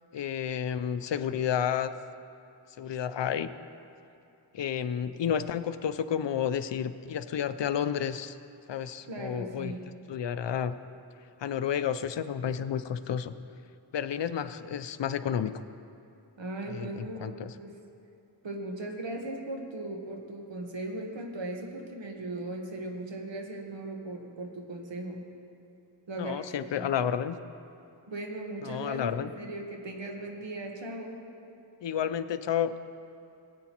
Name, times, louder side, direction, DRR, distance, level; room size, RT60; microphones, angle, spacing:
voice 1, 0.1-1.9 2.8-3.5 4.5-8.4 8.7-9.7 10.1-10.7 11.4-13.3 13.9-15.6 16.7-17.5 26.2-27.4 28.6-29.3 31.8-32.7, left 8 dB, 75° left, 12 dB, 0.5 m, -31 dB
voice 2, 9.1-9.8 16.4-17.7 18.4-25.2 26.1-26.4 26.7-26.9 28.1-31.2, right 1 dB, 85° right, 2 dB, 1.2 m, -38 dB
16.5 x 8.7 x 2.9 m, 2.7 s
wide cardioid pair, 55°, 44 cm